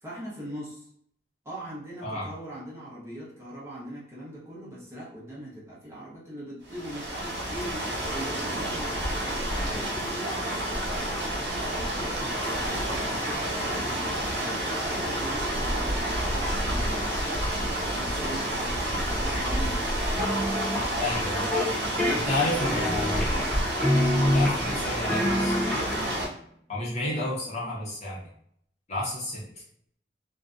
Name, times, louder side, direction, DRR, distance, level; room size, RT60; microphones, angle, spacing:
voice 1, 0.0-0.9 1.4-9.1 9.6-17.1 17.5-19.9 20.7-23.6 25.8-26.1, right 1 dB, 15° right, -7 dB, 0.7 m, -41 dB
sound 1, 6.7-26.3, right 1 dB, 70° right, 1.0 m, -29 dB
sound 2, 20.2-20.9 21.3-21.7 22.0-23.5 23.8-24.8 25.1-26.1, left 1 dB, 5° left, 0.3 m, -26 dB
voice 2, 21.0-21.4 22.3-23.3 24.3-25.6 26.7-28.2 28.9-29.5, left 1 dB, 35° left, -6 dB, 0.7 m, -30 dB
2.5 x 2.1 x 2.4 m, 0.68 s
head